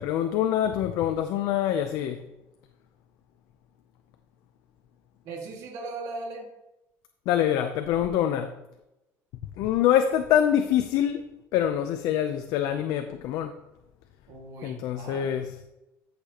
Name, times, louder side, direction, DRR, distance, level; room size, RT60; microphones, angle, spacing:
voice 1, 0.0-2.2 7.3-8.5 9.6-11.2 11.5-13.5 14.6-15.5, left 10 dB, 75° left, 0.6 m, -25 dB
voice 2, 5.2-6.5 14.3-15.3, right 3 dB, 70° right, 2.0 m, -38 dB
13.5 x 6.7 x 2.9 m
cardioid pair, 125°, 6 cm